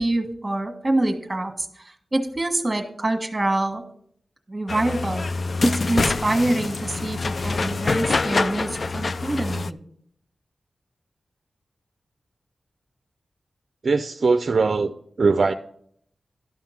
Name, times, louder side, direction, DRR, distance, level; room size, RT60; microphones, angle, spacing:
voice 1, 0.0-3.8 4.5-5.2 5.6-9.8, right 2 dB, 20° right, 6 dB, 1.5 m, -25 dB
sound 1, 4.7-9.7, left 3 dB, 55° left, 0.3 m, -25 dB
voice 2, 13.8-15.5, right 4 dB, 60° right, 9 dB, 0.4 m, -21 dB
12.0 x 5.6 x 5.8 m, 0.65 s
wide cardioid pair, 95°, 0 cm